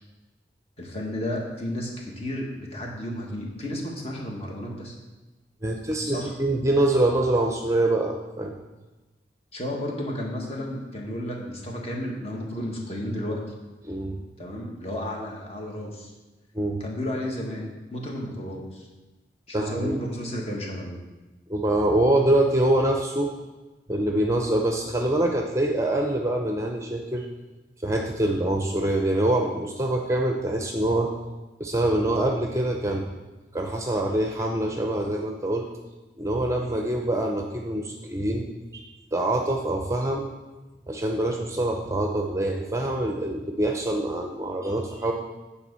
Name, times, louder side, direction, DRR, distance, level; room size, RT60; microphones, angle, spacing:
voice 1, 0.8-5.0 6.1-6.3 9.5-13.4 14.4-16.1 16.8-18.9 19.5-21.0, left 1 dB, 35° left, -1 dB, 1.7 m, -32 dB
voice 2, 5.6-8.6 13.8-14.2 16.5-16.8 19.5-20.0 21.5-23.3 23.9-27.3 27.8-31.1 31.6-33.1 33.5-35.7 36.2-38.8 39.1-40.3 40.9-45.1, right 1 dB, 15° right, 2 dB, 0.6 m, -25 dB
9.0 x 4.3 x 6.9 m, 1.2 s
head